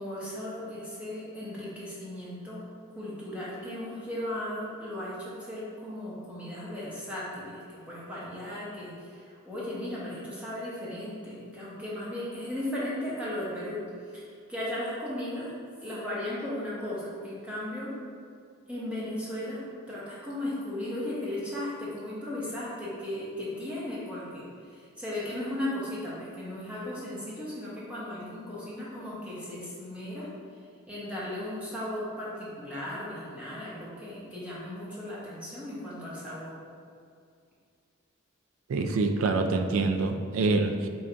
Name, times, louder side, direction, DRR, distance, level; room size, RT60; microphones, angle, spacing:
voice 1, 0.0-2.6 2.9-17.9 18.7-19.6 19.9-30.3 30.9-36.5, left 1 dB, 5° right, -8 dB, 0.9 m, -36 dB
voice 2, 38.7-40.9, right 3 dB, 65° right, 6 dB, 0.3 m, -26 dB
3.8 x 2.5 x 4.3 m, 2.2 s
head